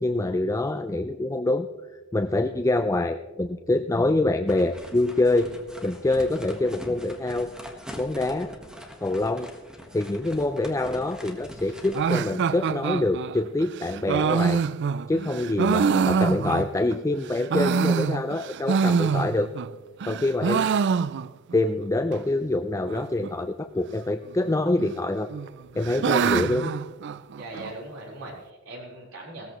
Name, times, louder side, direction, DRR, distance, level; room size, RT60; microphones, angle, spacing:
voice 1, 0.0-1.7 2.1-5.5 5.8-7.5 8.0-8.5 9.0-9.5 9.9-14.6 15.1-19.5 20.1-20.7 21.5-25.3 25.8-26.7, left 2 dB, 15° left, 8 dB, 0.4 m, -25 dB
sound 1, 4.5-12.2, equal, 5° right, 1.4 m, -43 dB
sound 2, 11.9-16.9 17.3-19.7 20.0-21.6 21.8-21.9 22.1-22.2 22.9-23.3 24.3-24.9 25.3-27.7, right 6 dB, 55° right, 0.4 m, -25 dB
voice 2, 27.4-29.5, right 1 dB, 85° right, -3 dB, 4.2 m, -40 dB
17.5 x 14.0 x 3.1 m, 1.2 s
head